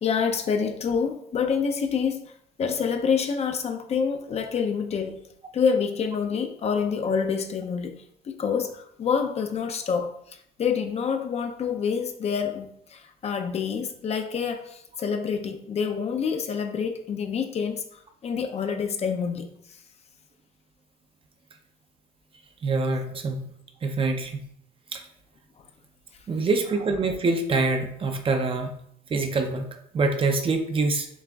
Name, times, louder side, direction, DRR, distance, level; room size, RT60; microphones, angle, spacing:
voice 1, 0.0-2.3 2.6-5.2 5.5-19.5, left 6 dB, 40° left, 0.5 m, -27 dB
voice 2, 22.6-23.5 23.8-24.4 24.9-25.0 26.3-28.8 29.1-31.1, right 3 dB, 30° right, 0.5 m, -25 dB
7.1 x 2.4 x 2.3 m
cardioid pair, 110°, 17 cm